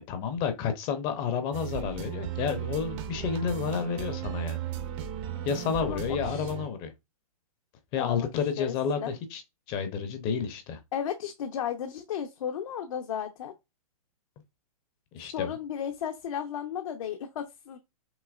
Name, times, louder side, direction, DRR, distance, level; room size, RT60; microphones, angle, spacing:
voice 1, 0.1-4.6 5.4-6.9 7.9-9.4 9.7-10.8 15.1-15.5, left 7 dB, 25° left, 0.6 m, -30 dB
sound 1, 1.5-6.7, right 10 dB, 30° right, 0.6 m, -36 dB
voice 2, 5.8-6.5 8.0-8.3 8.6-9.1 10.9-13.5 15.3-17.8, left 8 dB, 65° left, 0.7 m, -34 dB
6.1 x 2.9 x 2.4 m
hypercardioid pair, 145°, 19 cm